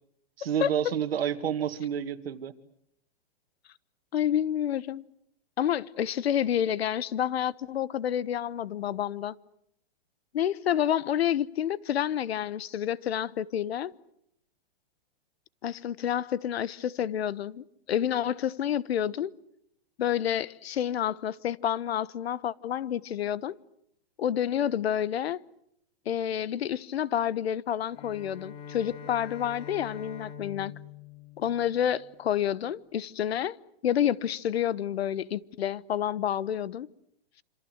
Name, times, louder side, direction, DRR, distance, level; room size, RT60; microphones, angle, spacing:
voice 1, 0.4-2.5, right 9 dB, 75° right, 2.3 m, -29 dB
voice 2, 4.1-5.0 5.6-9.4 10.3-13.9 15.6-19.3 20.0-23.6 24.2-25.4 26.1-30.7 31.4-33.6 33.8-36.9, left 10 dB, 90° left, 1.2 m, -29 dB
Bowed string instrument, 27.9-32.3, left 7 dB, 20° left, 1.6 m, -44 dB
27.0 x 26.5 x 8.0 m
supercardioid pair, 180°, 30 cm